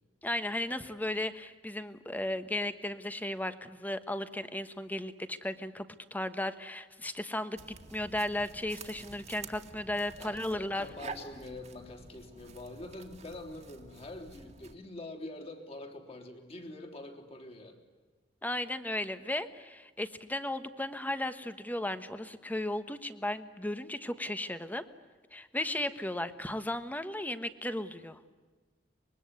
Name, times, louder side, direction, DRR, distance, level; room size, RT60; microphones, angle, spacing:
voice 1, 0.2-5.9 6.1-7.6 7.9-10.9 18.4-24.8 25.3-28.2, left 1 dB, 10° left, 10 dB, 1.2 m, -35 dB
sound 1, 7.6-14.8, right 4 dB, 40° right, 2.1 m, -49 dB
voice 2, 10.2-17.8, left 2 dB, 35° left, 4 dB, 3.5 m, -45 dB
25.0 x 22.0 x 9.7 m, 1.4 s
head